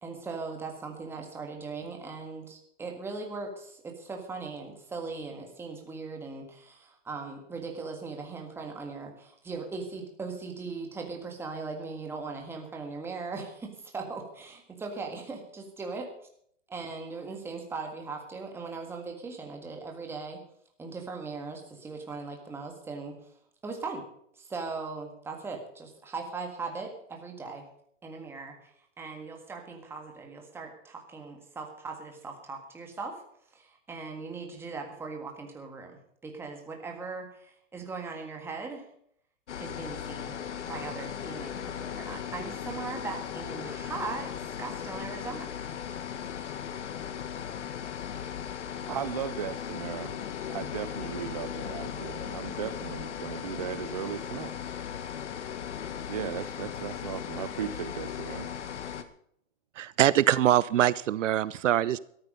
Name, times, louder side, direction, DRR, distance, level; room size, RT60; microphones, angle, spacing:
voice 1, 0.0-16.1 16.7-20.4 20.8-23.3 23.6-24.1 24.3-27.7 28.0-28.7 29.0-33.2 33.5-38.9 39.6-40.4 40.7-45.5, right 4 dB, 5° right, 3 dB, 1.7 m, -39 dB
sound 1, 39.5-59.0, left 8 dB, 65° left, 1.6 m, -37 dB
voice 2, 48.9-50.2 50.5-54.5 56.1-58.5, right 9 dB, 30° right, 12 dB, 0.4 m, -36 dB
voice 3, 59.8-62.0, right 12 dB, 75° right, 19 dB, 0.7 m, -23 dB
13.5 x 12.5 x 5.2 m, 0.66 s
hypercardioid pair, 165°, 38 cm